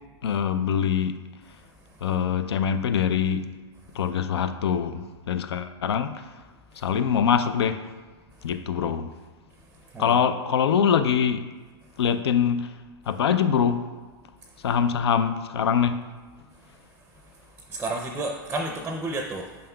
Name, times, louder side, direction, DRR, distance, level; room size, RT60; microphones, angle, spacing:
voice 1, 0.2-1.1 2.0-3.5 3.9-6.3 6.8-7.9 8.4-9.1 10.0-11.4 12.0-12.7 13.1-13.8 14.6-16.0, left 7 dB, 80° left, 10 dB, 0.4 m, -24 dB
voice 2, 9.9-10.2 17.6-19.6, right 2 dB, 10° right, 2 dB, 0.5 m, -31 dB
7.6 x 5.4 x 2.3 m, 1.4 s
hypercardioid pair, 115°, 13 cm